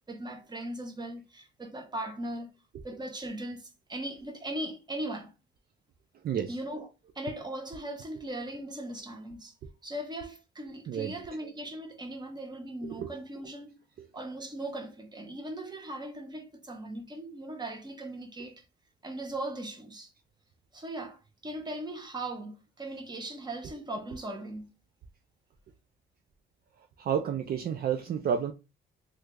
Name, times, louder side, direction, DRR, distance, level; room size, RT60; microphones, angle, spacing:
voice 1, 0.1-2.5 2.8-5.3 6.5-9.5 9.8-13.8 14.1-18.6 19.0-20.1 20.7-24.7, right 1 dB, 20° right, 0.9 m, -39 dB
voice 2, 6.2-6.6 10.9-11.1 12.8-13.1 14.0-14.1 27.0-28.5, right 8 dB, 50° right, 0.4 m, -31 dB
3.2 x 2.4 x 3.1 m
cardioid pair, 90°, 20 cm